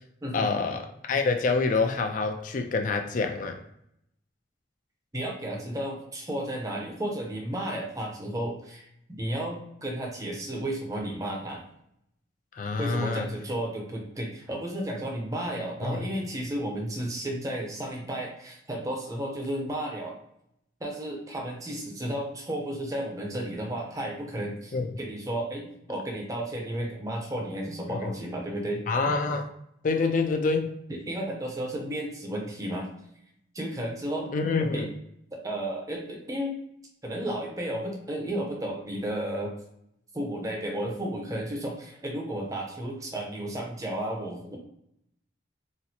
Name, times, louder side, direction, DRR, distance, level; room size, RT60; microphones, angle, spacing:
voice 1, 0.3-0.8 1.1-3.6 12.6-13.3 15.8-16.0 24.7-24.9 27.9-28.1 28.9-29.5 29.8-30.7 34.3-34.9, left 4 dB, 40° left, 5 dB, 0.4 m, -26 dB
voice 2, 5.1-8.8 9.1-11.6 12.8-20.2 20.8-28.8 30.9-32.9 33.5-34.3 34.7-34.9 35.3-36.5 37.0-39.5 40.1-44.6, right 1 dB, 15° right, 0 dB, 0.5 m, -33 dB
4.2 x 2.0 x 2.7 m, 0.76 s
head